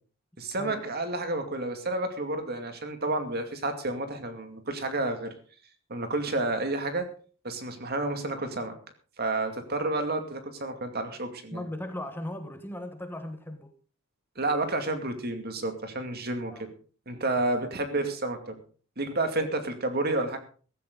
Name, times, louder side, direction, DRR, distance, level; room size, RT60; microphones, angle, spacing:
voice 1, 0.4-5.3 5.9-7.1 7.4-8.7 9.2-11.6 14.4-16.7 17.1-18.6 19.0-20.4, right 2 dB, 45° right, 2.3 m, -30 dB
voice 2, 11.5-13.7 16.5-16.7 17.4-17.5 19.4-19.6, left 1 dB, 10° left, 1.3 m, -38 dB
15.5 x 14.0 x 3.9 m
head